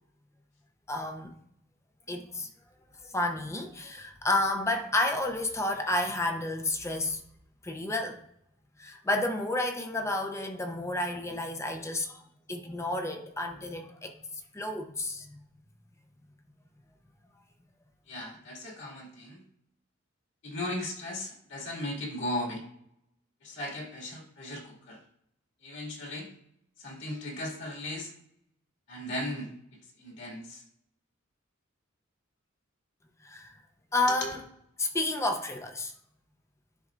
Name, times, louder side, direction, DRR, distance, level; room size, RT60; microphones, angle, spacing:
voice 1, 0.9-1.3 2.1-2.5 3.0-7.2 7.6-8.2 8.8-12.2 12.5-14.2 14.5-15.4 33.2-33.5 33.9-34.4 34.8-35.9, left 2 dB, 15° left, 0.6 m, -31 dB
voice 2, 18.1-19.4 20.4-22.6 23.4-25.0 25.6-26.3 26.8-28.1 28.9-29.5 30.0-30.6, left 1 dB, 60° left, 2.1 m, -37 dB
10.5 x 4.1 x 2.5 m
head